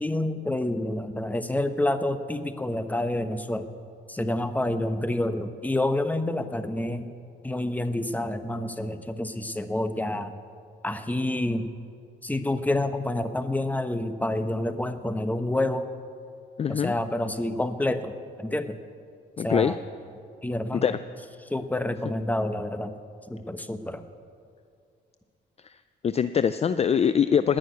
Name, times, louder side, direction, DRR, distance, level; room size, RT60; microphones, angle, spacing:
voice 1, 0.0-3.7 4.1-7.1 7.4-10.4 10.8-11.7 12.2-15.9 16.7-18.8 19.4-19.8 20.4-21.0 21.5-22.9 23.3-24.0, left 1 dB, 10° left, 9 dB, 0.9 m, -28 dB
voice 2, 16.6-16.9 19.4-19.7 20.8-21.0 25.6-25.7 26.0-27.6, left 7 dB, 30° left, 12 dB, 0.4 m, -23 dB
19.0 x 6.4 x 9.3 m, 2.3 s
cardioid pair, 90°, 20 cm